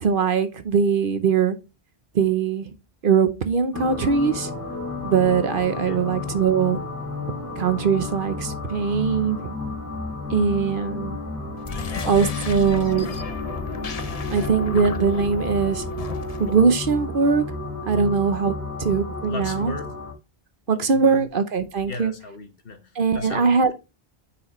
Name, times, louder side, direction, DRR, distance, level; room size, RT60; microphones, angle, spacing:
voice 1, 0.0-1.6 2.1-2.7 3.0-4.5 5.0-6.8 7.6-9.5 10.3-11.2 12.1-13.1 14.3-15.8 16.4-17.4 17.8-19.7 20.7-22.1 22.9-23.7, right 6 dB, 60° right, 1.0 m, -21 dB
sound 1, 3.7-20.1, left 3 dB, 15° left, 2.6 m, -32 dB
sound 2, 11.6-16.6, left 6 dB, 45° left, 0.6 m, -34 dB
voice 2, 19.3-19.9 20.7-21.3 21.9-23.7, left 3 dB, 60° left, 1.4 m, -36 dB
9.7 x 4.8 x 3.1 m
omnidirectional pair, 1.1 m